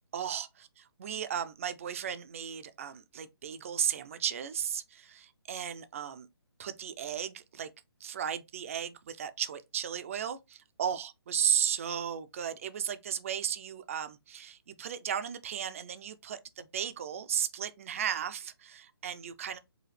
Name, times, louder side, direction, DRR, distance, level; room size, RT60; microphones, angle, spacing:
voice 1, 0.1-0.5 1.0-6.3 6.6-7.7 8.0-19.6, right 8 dB, 30° right, 0.4 m, -35 dB
4.8 x 2.4 x 3.2 m
hypercardioid pair, 160°, 14 cm